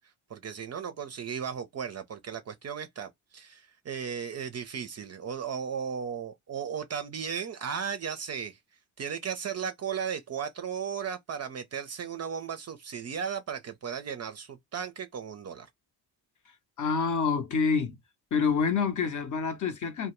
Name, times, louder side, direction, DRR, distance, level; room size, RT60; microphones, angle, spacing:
voice 1, 0.3-8.6 9.0-15.7, right 7 dB, 35° right, 0.4 m, -35 dB
voice 2, 16.8-18.0 18.3-20.1, left 5 dB, 40° left, 0.6 m, -27 dB
2.1 x 2.1 x 2.9 m
supercardioid pair, 60°, 47 cm